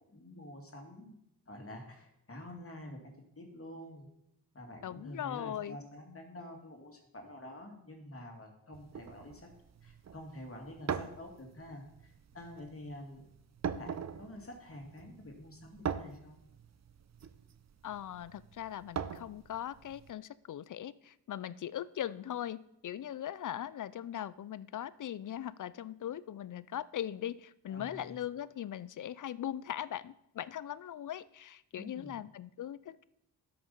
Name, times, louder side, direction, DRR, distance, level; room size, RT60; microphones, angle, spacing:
voice 1, 0.1-1.2 1.5-4.1 4.5-9.5 9.8-13.2 13.7-16.4 27.7-28.1 31.7-32.2, left 1 dB, 35° left, 2 dB, 2.5 m, -48 dB
voice 2, 4.8-5.8 17.8-33.1, left 11 dB, 50° left, 18 dB, 0.5 m, -40 dB
sound 1, 8.7-20.1, right 7 dB, 40° right, 0.7 m, -42 dB
12.5 x 6.0 x 5.5 m, 0.80 s
cardioid pair, 65°, 41 cm